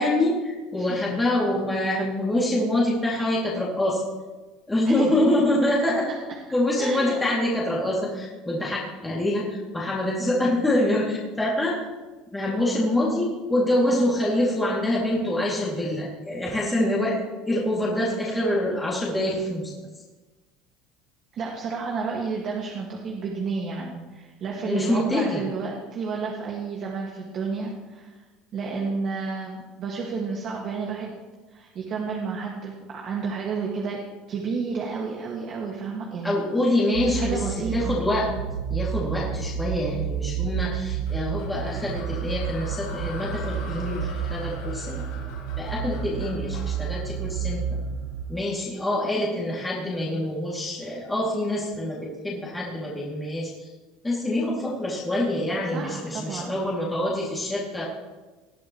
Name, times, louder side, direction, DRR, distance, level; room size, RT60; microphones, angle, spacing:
voice 1, 0.0-4.0 4.7-6.1 6.5-11.8 12.3-17.2 17.5-19.7 24.6-25.4 36.2-37.4 37.7-38.3 38.7-45.0 45.6-47.8 48.3-53.7 54.0-57.8, left 1 dB, 10° left, -5 dB, 2.6 m, -25 dB
voice 2, 6.8-7.2 21.3-28.2 28.5-31.1 31.5-34.0 34.3-36.3 37.1-38.0 55.7-56.5, right 5 dB, 40° right, -2 dB, 1.9 m, -31 dB
sound 1, 36.9-48.2, right 8 dB, 85° right, 0.7 m, -30 dB
sound 2, 41.1-48.2, left 4 dB, 85° left, 4.0 m, -43 dB
19.5 x 11.5 x 3.1 m, 1.2 s
cardioid pair, 135°, 0 cm